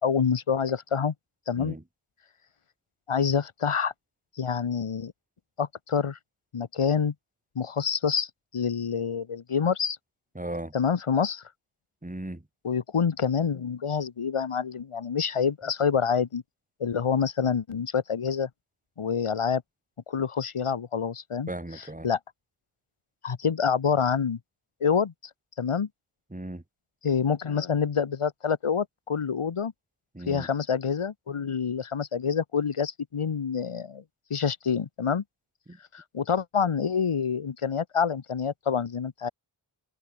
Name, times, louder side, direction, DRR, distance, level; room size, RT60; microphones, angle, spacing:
voice 1, 0.0-1.1 1.5-1.8 3.1-3.9 4.4-5.1 5.6-6.2 6.5-7.1 7.6-10.0 10.7-11.4 12.6-16.4 16.8-18.5 19.0-19.6 20.1-22.2 23.2-24.4 24.8-25.1 25.6-25.9 27.0-29.7 30.3-34.0 34.3-35.2 35.9-39.3, left 6 dB, 90° left, 2.5 m, -27 dB
voice 2, 10.4-10.7 12.0-12.4 21.5-22.1 26.3-26.6 30.1-30.5 35.7-35.8, right 1 dB, 15° right, 5.9 m, -36 dB
wide cardioid pair, 80°, 49 cm